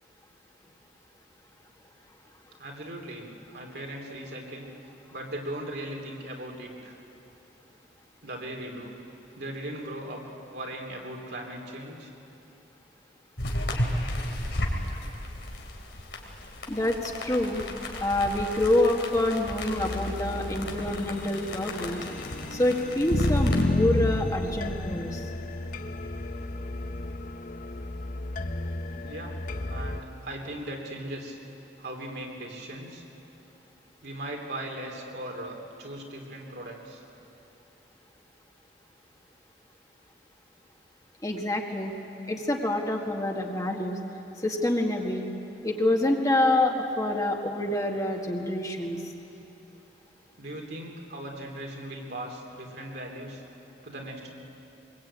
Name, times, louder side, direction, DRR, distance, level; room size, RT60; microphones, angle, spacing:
voice 1, 2.6-4.7 5.1-7.0 8.2-8.9 9.4-10.2 10.5-12.1 29.0-29.3 29.7-31.4 31.8-33.0 34.0-37.0 50.4-53.4 53.8-54.3, right 1 dB, 65° right, 1 dB, 3.3 m, -38 dB
sound 1, 13.4-23.6, left 1 dB, 85° left, 3.2 m, -34 dB
voice 2, 16.7-17.6 18.0-22.0 22.5-25.3 41.2-41.9 42.3-44.0 44.4-45.3 45.6-49.0, left 1 dB, 20° left, 1 dB, 1.8 m, -26 dB
sound 2, 19.8-30.0, left 2 dB, 50° left, 0.9 m, -31 dB
22.5 x 22.5 x 8.9 m, 2.9 s
head